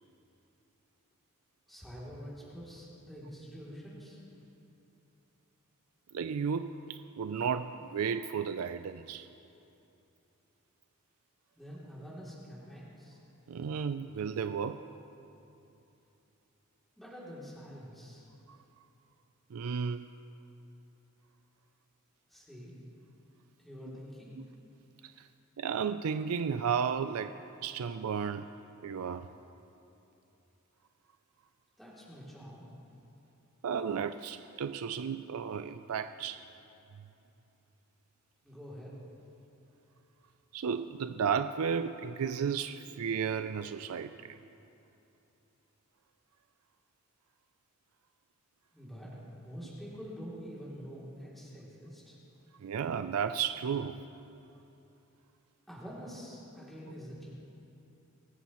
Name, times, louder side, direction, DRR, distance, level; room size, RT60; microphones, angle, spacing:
voice 1, 1.7-4.2 11.5-13.2 17.0-18.3 22.3-22.7 23.6-24.4 31.8-32.6 38.4-38.9 48.7-52.2 55.7-57.3, equal, ahead, -8 dB, 2.8 m, -46 dB
voice 2, 6.1-9.3 13.5-14.8 18.5-18.6 19.5-20.1 24.4-24.5 25.0-25.1 25.6-27.4 27.6-28.5 28.8-29.3 33.6-36.4 40.5-44.4 52.6-54.0, right 6 dB, 85° right, 10 dB, 0.4 m, -33 dB
25.0 x 14.0 x 3.0 m, 2.9 s
head